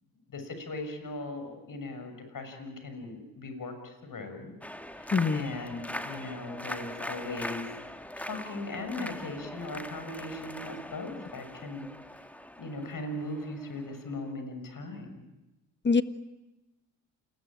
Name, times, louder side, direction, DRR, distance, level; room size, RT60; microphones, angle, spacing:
voice 1, 0.3-4.5 5.0-7.7 8.2-11.9 12.6-15.2, left 2 dB, 45° left, 7 dB, 7.0 m, -38 dB
sound 1, 4.6-14.3, equal, 5° left, 1.9 m, -42 dB
voice 2, 5.1-5.5 15.8-16.0, left 4 dB, 25° left, 12 dB, 1.5 m, -24 dB
28.0 x 21.0 x 9.0 m, 1.0 s
supercardioid pair, 65°, 45 cm